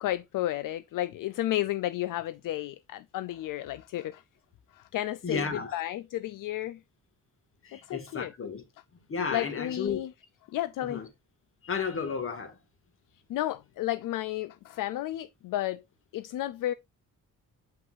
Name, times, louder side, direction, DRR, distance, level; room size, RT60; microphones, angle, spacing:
voice 1, 0.0-4.2 4.7-5.4 5.7-6.8 7.7-8.3 9.3-10.1 10.5-11.0 13.3-15.8 16.1-16.7, left 14 dB, 70° left, 0.5 m, -32 dB
voice 2, 5.2-5.8 7.6-8.6 8.9-10.0 10.8-11.1 11.6-12.6, left 5 dB, 40° left, 2.0 m, -33 dB
8.0 x 5.5 x 2.5 m
cardioid pair, 140°, 34 cm